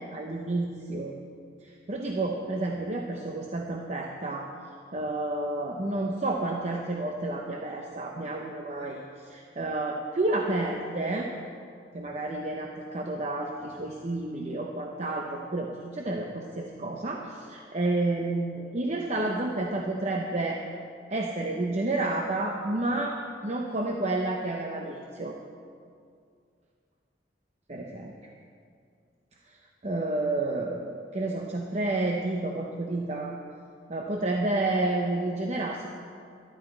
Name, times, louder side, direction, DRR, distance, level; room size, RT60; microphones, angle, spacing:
voice 1, 0.1-1.2 1.6-4.5 4.9-11.3 11.9-20.6 21.1-25.3 27.7-28.1 29.5-29.6 29.8-33.4 33.9-35.9, right 2 dB, 40° right, 1 dB, 0.8 m, -30 dB
13.0 x 12.5 x 4.5 m, 2.3 s
head